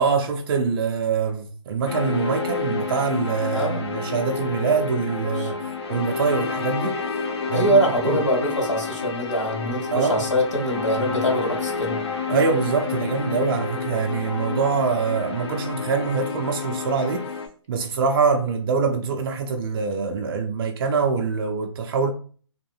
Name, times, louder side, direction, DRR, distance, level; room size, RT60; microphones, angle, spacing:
voice 1, 0.0-5.6 5.9-7.0 7.5-7.8 8.0-8.2 9.9-10.2 12.3-17.3 17.7-22.1, right 5 dB, 50° right, 0.4 m, -24 dB
sound 1, 1.9-17.5, left 5 dB, 60° left, 0.7 m, -29 dB
voice 2, 7.5-12.0, right 1 dB, 90° left, 1.2 m, -23 dB
2.8 x 2.5 x 2.4 m
hypercardioid pair, 145°, 16 cm